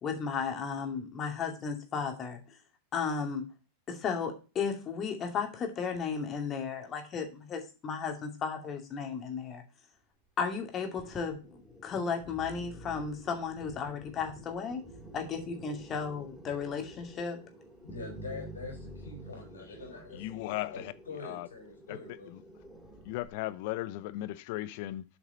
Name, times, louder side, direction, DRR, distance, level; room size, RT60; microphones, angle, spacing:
voice 1, 0.0-2.4 2.9-3.4 3.9-9.6 10.4-14.8 15.1-17.4, left 6 dB, 30° left, 2.5 m, -34 dB
sound 1, 11.0-23.3, right 1 dB, 5° left, 2.5 m, -49 dB
voice 2, 17.8-20.3 20.7-22.3, left 3 dB, 80° left, 4.0 m, -44 dB
voice 3, 20.1-20.9 21.2-21.5 21.9-22.0 22.3-22.4 23.0-25.0, left 16 dB, 55° left, 0.7 m, -36 dB
8.2 x 5.9 x 4.1 m
figure-of-eight pair, 95°, 0 cm